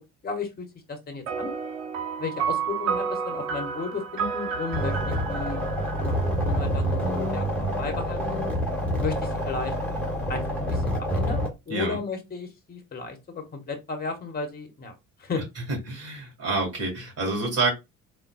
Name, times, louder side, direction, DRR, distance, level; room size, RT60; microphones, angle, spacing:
voice 1, 0.2-1.5 2.2-5.6 6.0-8.5 9.0-9.7 10.3-14.9 15.2-15.4, left 4 dB, 25° left, 5 dB, 1.0 m, -34 dB
sound 1, 1.3-7.0, right 6 dB, 70° right, 0.7 m, -31 dB
sound 2, 4.7-11.5, equal, 5° left, 1.3 m, -27 dB
voice 2, 15.9-17.7, right 3 dB, 35° right, 0 dB, 1.9 m, -27 dB
3.7 x 2.3 x 2.2 m, 0.22 s
figure-of-eight pair, 55°, 40 cm